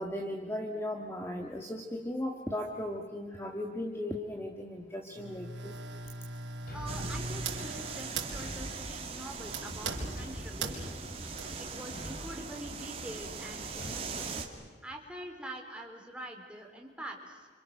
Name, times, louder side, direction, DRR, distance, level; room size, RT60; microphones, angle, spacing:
voice 1, 0.0-5.8, left 1 dB, 15° left, 2 dB, 1.7 m, -37 dB
sound 1, 5.2-11.5, right 3 dB, 80° right, 4.6 m, -41 dB
Thump thud, 6.7-7.3 8.4-9.0 10.2-10.7 11.9-12.4 13.8-14.1, equal, 50° left, 4.4 m, -44 dB
voice 2, 6.7-11.0 11.6-14.3 14.8-17.5, right 1 dB, 5° right, 1 dB, 3.7 m, -45 dB
sound 2, 6.9-14.5, right 4 dB, 30° right, 2.5 m, -40 dB
29.5 x 26.5 x 6.7 m, 1.5 s
head